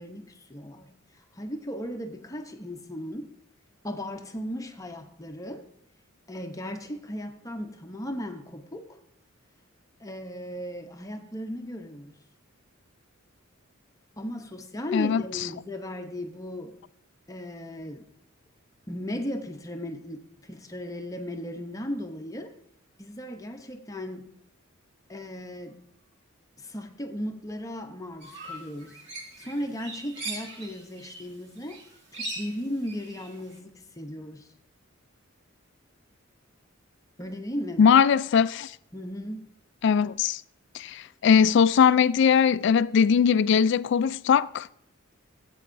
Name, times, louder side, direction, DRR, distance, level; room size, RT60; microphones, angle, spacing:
voice 1, 0.0-3.3 3.8-5.7 6.3-9.0 10.0-12.2 14.2-16.8 17.3-18.1 18.9-22.6 23.0-24.3 25.1-25.8 26.6-29.0 29.4-31.9 32.1-34.5 37.2-38.0 38.9-39.5, equal, 15° left, 0.7 m, -36 dB
sound 1, 28.2-31.3 31.6-33.5, right 2 dB, 60° right, 2.1 m, -40 dB
voice 2, 37.8-38.7 39.8-40.4 40.7-44.7, left 7 dB, 60° left, 0.3 m, -20 dB
15.5 x 8.4 x 2.6 m
head